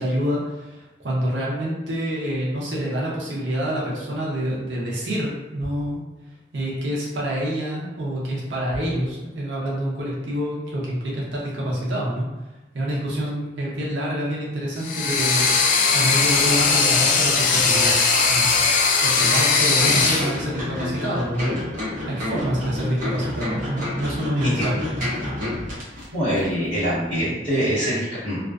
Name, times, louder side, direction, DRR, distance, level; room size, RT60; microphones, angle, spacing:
voice 1, 0.0-6.0 6.5-12.3 12.7-17.9 18.3-18.5 19.0-21.5 22.1-25.1, equal, 85° right, -5 dB, 0.6 m, -27 dB
sound 1, 14.8-20.3, left 4 dB, 45° left, 0.3 m, -19 dB
sound 2, 19.8-26.1 26.4-26.5, left 1 dB, 50° right, 0.8 m, -29 dB
voice 2, 26.1-28.4, equal, 25° right, -14 dB, 1.2 m, -24 dB
2.3 x 2.3 x 2.3 m, 1.1 s
head